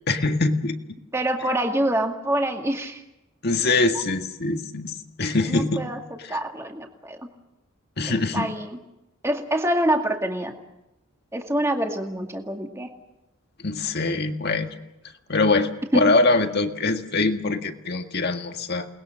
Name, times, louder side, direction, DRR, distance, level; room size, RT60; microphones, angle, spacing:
voice 1, 0.1-0.8 3.4-5.9 6.3-6.4 8.0-8.5 13.6-14.8 15.3-18.9, left 3 dB, 50° left, 6 dB, 1.8 m, -23 dB
voice 2, 1.1-3.0 5.5-6.0 6.3-7.3 8.0-8.8 9.2-10.5 11.3-12.9 15.9-16.1, right 1 dB, 15° right, 3 dB, 2.1 m, -26 dB
29.0 x 20.5 x 6.6 m, 0.92 s
head